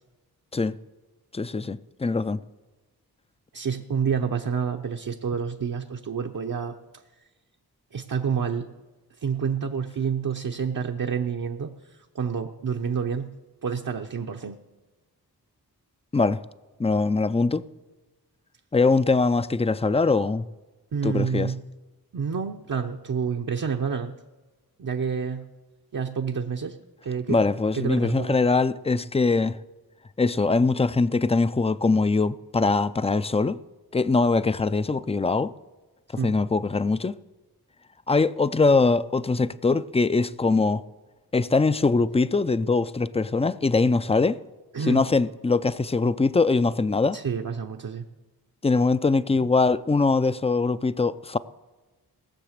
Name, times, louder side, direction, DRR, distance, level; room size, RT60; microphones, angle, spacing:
voice 1, 1.3-2.4 16.1-16.4 16.8-17.6 18.7-20.5 21.0-21.5 27.3-29.6 30.2-33.6 33.9-35.5 36.2-37.2 38.1-40.8 41.3-44.4 44.9-47.2 48.6-51.4, left 3 dB, 15° left, 0.4 m, -22 dB
voice 2, 3.5-6.8 7.9-8.7 9.2-11.7 12.1-13.3 13.6-14.6 20.9-21.6 22.1-24.1 24.8-25.4 25.9-26.8 27.0-27.5 27.7-28.4 36.2-36.3 44.7-45.1 47.1-48.1, right 6 dB, 55° right, 0.8 m, -28 dB
18.5 x 6.8 x 6.6 m
cardioid pair, 55°, 39 cm